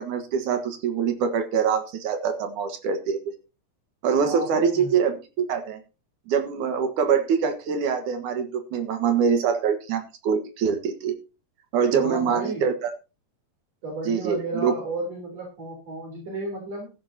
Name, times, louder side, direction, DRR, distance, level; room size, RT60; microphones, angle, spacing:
voice 1, 0.0-3.3 4.0-5.8 6.3-11.2 11.7-12.9 14.1-14.7, right 6 dB, 85° right, 6 dB, 3.1 m, -24 dB
voice 2, 4.2-4.9 11.9-12.7 13.8-16.9, right 2 dB, 55° right, 0 dB, 4.9 m, -33 dB
15.0 x 12.0 x 2.9 m, 0.31 s
omnidirectional pair, 3.4 m